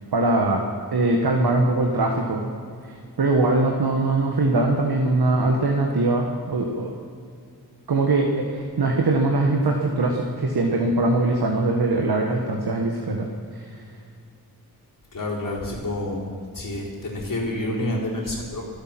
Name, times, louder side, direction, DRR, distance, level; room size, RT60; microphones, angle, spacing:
voice 1, 0.1-0.6 0.9-2.4 3.2-6.9 7.9-13.3 13.5-13.6, right 2 dB, 75° right, 1 dB, 1.5 m, -21 dB
voice 2, 15.1-16.2 16.5-18.6, left 1 dB, 55° left, -4 dB, 4.3 m, -28 dB
24.5 x 8.8 x 6.0 m, 2.3 s
wide cardioid pair, 105°, 38 cm